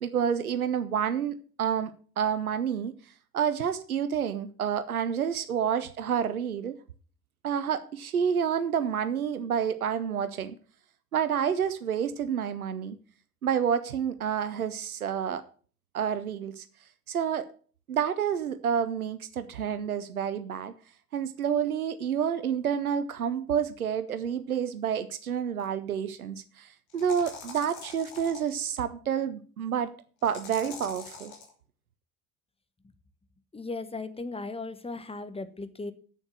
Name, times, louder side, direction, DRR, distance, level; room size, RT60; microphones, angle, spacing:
voice 1, 0.0-3.0 3.3-6.8 7.4-10.6 11.1-13.0 13.4-15.4 15.9-16.6 17.1-17.5 17.9-20.7 21.1-29.9 30.2-31.3, right 8 dB, 85° right, 12 dB, 0.7 m, -29 dB
sound 1, 25.6-25.7 26.9-28.5 30.2-31.5, left 4 dB, 65° left, 3.3 m, -44 dB
voice 2, 33.5-35.9, left 3 dB, 15° left, 12 dB, 1.3 m, -37 dB
8.3 x 7.1 x 7.6 m, 0.42 s
figure-of-eight pair, 55°, 42 cm